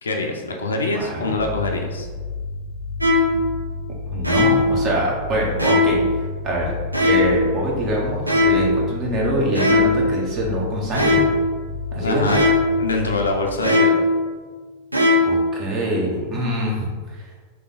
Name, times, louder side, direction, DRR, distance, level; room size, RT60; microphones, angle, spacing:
voice 1, 0.0-2.1 12.0-12.4 12.8-14.0, left 2 dB, 70° left, 2 dB, 0.5 m, -24 dB
voice 2, 0.9-1.3 4.1-6.0 6.4-6.7 7.0-11.2 11.9-12.3 15.2-17.3, right 1 dB, 35° right, -3 dB, 1.1 m, -24 dB
sound 1, 1.4-13.5, left 4 dB, 10° left, 0.9 m, -31 dB
sound 2, 3.0-3.4 4.2-4.8 5.6-6.1 6.9-7.4 8.3-8.8 9.6-10.1 10.9-11.4 12.3-12.7 13.6-14.1 14.9-15.4, left 2 dB, 85° right, 0.6 m, -18 dB
3.4 x 2.9 x 3.9 m, 1.5 s
figure-of-eight pair, 90°, 0 cm